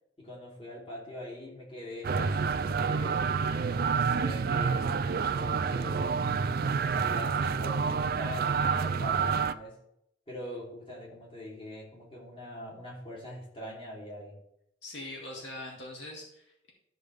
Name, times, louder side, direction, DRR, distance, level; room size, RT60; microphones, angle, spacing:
voice 1, 0.2-3.3 3.9-6.3 6.8-9.8 10.3-14.4, left 1 dB, 30° left, -5 dB, 3.3 m, -43 dB
sound 1, 2.0-9.5, right 5 dB, 55° right, 0.4 m, -28 dB
voice 2, 14.8-16.7, left 1 dB, 75° left, -2 dB, 2.3 m, -42 dB
13.0 x 6.3 x 3.5 m, 0.77 s
head